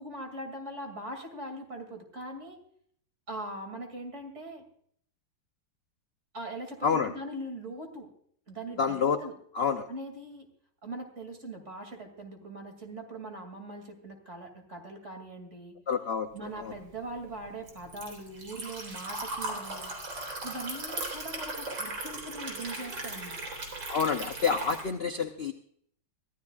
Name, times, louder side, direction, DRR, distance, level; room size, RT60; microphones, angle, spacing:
voice 1, 0.0-2.6 3.3-4.6 6.3-8.1 8.5-9.3 9.9-10.5 10.8-15.8 16.3-19.9 20.4-23.4, right 1 dB, 40° right, 4 dB, 2.8 m, -41 dB
voice 2, 8.8-9.2 9.5-9.9 15.9-16.7 23.9-25.5, left 6 dB, 55° left, 7 dB, 0.6 m, -28 dB
Liquid, 16.6-24.8, right 2 dB, 90° right, 4.3 m, -38 dB
24.0 x 14.5 x 2.4 m, 0.64 s
omnidirectional pair, 2.0 m